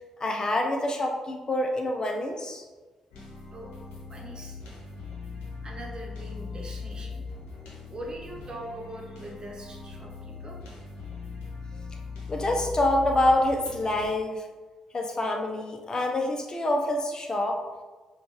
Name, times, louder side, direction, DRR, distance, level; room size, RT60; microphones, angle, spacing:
voice 1, 0.2-2.6 12.3-14.4 14.9-17.6, left 1 dB, 35° left, 2 dB, 0.7 m, -26 dB
sound 1, 3.1-14.1, left 4 dB, 75° left, 0.9 m, -40 dB
voice 2, 4.1-4.6 5.6-7.2 7.9-10.6, right 1 dB, 35° right, -1 dB, 1.1 m, -41 dB
5.0 x 2.5 x 3.1 m, 1.3 s
hypercardioid pair, 40°, 2 cm